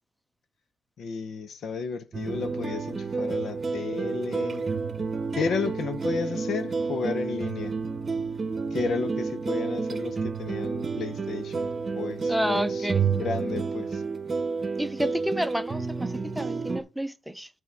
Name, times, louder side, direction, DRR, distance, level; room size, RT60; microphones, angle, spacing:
voice 1, 1.0-4.7 5.3-7.7 8.7-12.9 13.2-14.0, left 5 dB, 65° left, 0.7 m, -33 dB
sound 1, 2.1-16.8, right 4 dB, 35° right, 0.9 m, -30 dB
voice 2, 12.3-13.0 14.8-17.5, equal, ahead, 0.7 m, -30 dB
8.0 x 3.6 x 6.0 m
cardioid pair, 90°, 0 cm